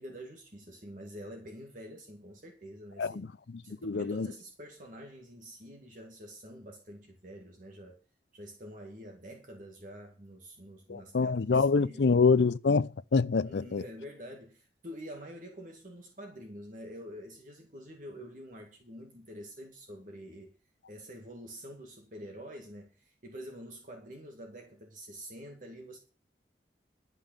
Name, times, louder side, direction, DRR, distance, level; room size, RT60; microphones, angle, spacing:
voice 1, 0.0-3.3 3.6-8.0 8.3-12.2 13.4-20.6 20.9-26.0, equal, 50° right, 2.0 m, -47 dB
voice 2, 3.7-4.3 10.9-13.8, left 4 dB, 75° left, 0.5 m, -26 dB
12.0 x 5.5 x 8.8 m
head